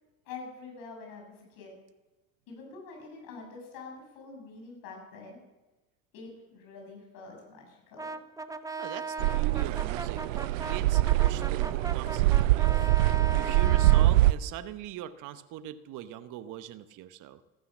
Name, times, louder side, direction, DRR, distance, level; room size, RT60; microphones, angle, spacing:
voice 1, 0.3-1.7 2.5-5.4 6.1-8.2, left 4 dB, 65° left, 1 dB, 7.0 m, -46 dB
Brass instrument, 8.0-14.1, right 3 dB, 10° right, 0.9 m, -38 dB
voice 2, 8.8-17.4, right 11 dB, 55° right, 12 dB, 1.0 m, -42 dB
sound 1, 9.2-14.3, right 16 dB, 90° right, 0.5 m, -24 dB
14.5 x 12.5 x 7.3 m, 1.1 s
hypercardioid pair, 75°, 38 cm